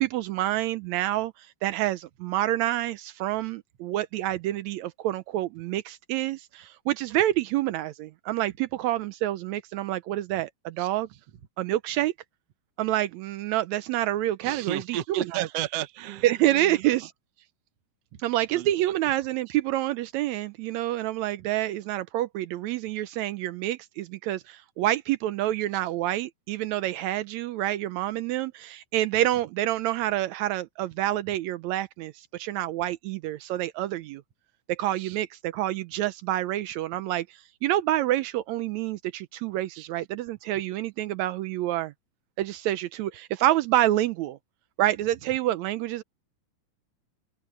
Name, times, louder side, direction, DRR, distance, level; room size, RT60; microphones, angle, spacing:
voice 1, 0.0-11.1 11.6-12.1 12.8-15.5 16.2-17.1 18.2-34.2 34.7-41.9 42.4-44.4 44.8-46.0, right 14 dB, 90° right, 1.6 m, -27 dB
voice 2, 14.4-16.9 18.1-18.2 18.5-19.0 25.7-25.8 35.0-35.2 39.7-39.9, right 12 dB, 60° right, 1.9 m, -34 dB
open air
omnidirectional pair, 4.0 m